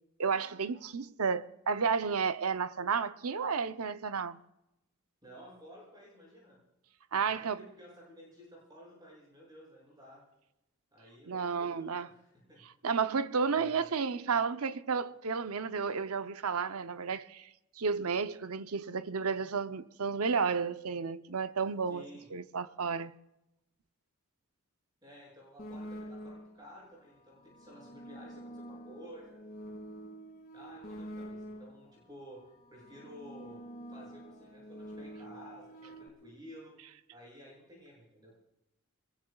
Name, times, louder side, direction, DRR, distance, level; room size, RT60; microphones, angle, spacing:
voice 1, 0.2-4.4 7.1-7.6 11.3-12.1 12.8-17.5 17.8-23.1, right 5 dB, 80° right, 0.7 m, -32 dB
voice 2, 5.2-6.6 7.2-10.2 10.9-12.6 13.5-13.9 21.9-22.3 25.0-29.4 30.5-33.6 33.9-36.8 37.1-38.4, equal, 20° right, 6.9 m, -53 dB
sound 1, 25.6-26.7 27.4-31.9 32.7-36.1, equal, 40° left, 2.4 m, -46 dB
26.5 x 21.5 x 2.3 m
head